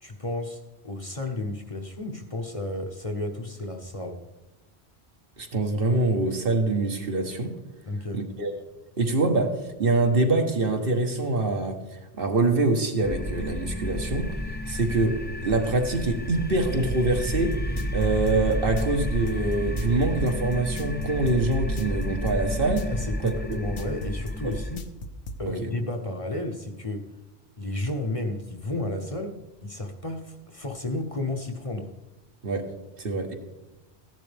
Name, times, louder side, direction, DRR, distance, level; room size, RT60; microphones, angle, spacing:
voice 1, 0.0-4.2 7.9-8.2 22.9-24.8 25.4-27.1 27.6-31.9, left 2 dB, 35° left, 3 dB, 1.0 m, -32 dB
voice 2, 5.4-7.5 8.1-8.5 9.0-11.8 12.2-14.3 14.7-17.5 17.9-22.9 23.2-23.6 24.4-24.5 25.6-25.7 32.4-32.7 33.0-33.3, right 2 dB, 60° right, 4 dB, 1.5 m, -25 dB
sound 1, 13.0-24.8, equal, 15° left, 0.4 m, -31 dB
sound 2, 17.5-25.4, left 1 dB, 65° left, 1.1 m, -38 dB
15.0 x 11.0 x 3.4 m, 1.0 s
omnidirectional pair, 1.1 m